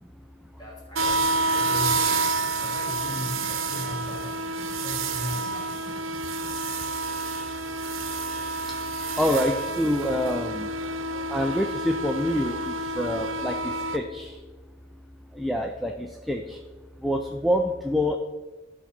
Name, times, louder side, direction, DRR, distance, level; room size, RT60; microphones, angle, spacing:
voice 1, 0.6-4.4 4.7-6.2, left 1 dB, 20° left, -5 dB, 2.5 m, -38 dB
sound 1, 0.9-14.0, right 3 dB, 90° right, 0.9 m, -29 dB
voice 2, 9.2-10.7 11.3-12.6 13.0-13.5 13.9-14.3 15.4-15.9 16.3-16.6 17.0-18.2, equal, ahead, 3 dB, 0.4 m, -26 dB
12.5 x 4.2 x 5.9 m, 1.3 s
head